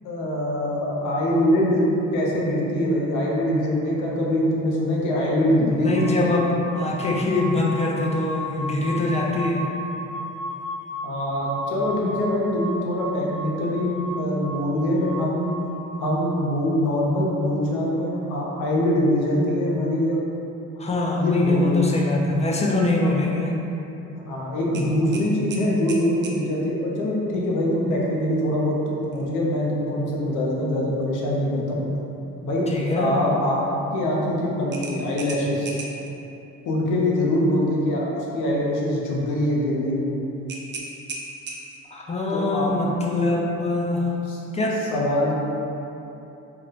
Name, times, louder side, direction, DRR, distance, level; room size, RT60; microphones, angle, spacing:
voice 1, 0.0-6.3 11.0-15.5 16.0-20.2 21.1-21.8 24.2-31.8 32.4-32.7 33.0-33.6 33.9-35.8 36.6-38.1 38.3-40.0 42.3-42.7 43.3-43.6 44.2-44.4 44.8-45.3, left 1 dB, 85° left, -4 dB, 0.6 m, -23 dB
voice 2, 5.6-9.6 20.8-23.6 31.8-31.9 32.7-33.1 41.9-44.0 44.5-44.7, left 2 dB, 25° left, -2 dB, 0.4 m, -23 dB
sound 1, 5.9-16.1, equal, 65° right, 0.9 m, -35 dB
sound 2, 24.7-26.4 29.0-29.3 29.7-29.8 34.7-36.1 40.5-41.9, right 3 dB, 40° right, 0.4 m, -36 dB
2.2 x 2.2 x 3.9 m, 2.9 s
cardioid pair, 90°, 30 cm